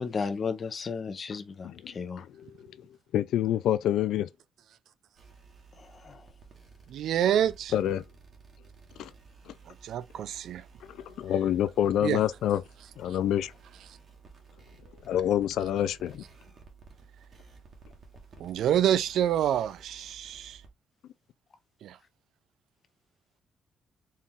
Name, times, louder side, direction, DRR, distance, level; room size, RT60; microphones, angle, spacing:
voice 1, 0.0-2.2 5.8-6.2, left 5 dB, 35° left, 0.6 m, -34 dB
voice 2, 3.1-4.3 7.7-8.0 9.0-9.1 9.5-9.6 10.9-12.6 13.0-13.5 15.0-16.2, left 11 dB, 85° left, 0.4 m, -27 dB
sound 1, 5.2-20.7, right 4 dB, 40° right, 1.1 m, -54 dB
voice 3, 6.9-7.7 9.7-10.6 12.0-12.2 18.4-20.6 21.8-22.0, right 10 dB, 75° right, 0.3 m, -27 dB
4.2 x 2.4 x 3.6 m
cardioid pair, 160°, 0 cm